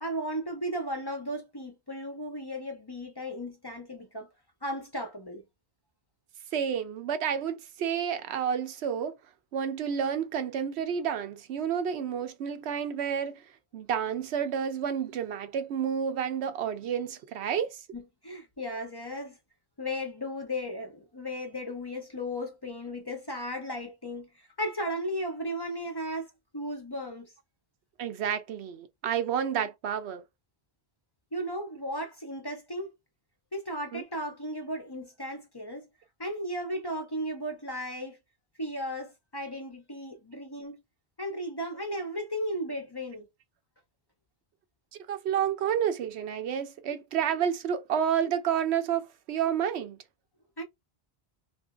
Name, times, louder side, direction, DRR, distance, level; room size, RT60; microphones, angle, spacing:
voice 1, 0.0-4.3 4.6-5.4 17.9-19.4 19.8-27.3 31.3-32.9 33.5-35.9 36.2-38.2 38.6-40.8 41.2-43.3 50.6-50.7, equal, 30° left, 0.6 m, -35 dB
voice 2, 6.5-9.2 9.5-13.4 13.7-17.8 28.0-30.2 33.9-34.0 45.1-50.0, right 8 dB, 90° right, 0.9 m, -30 dB
2.7 x 2.6 x 2.3 m
omnidirectional pair, 1.1 m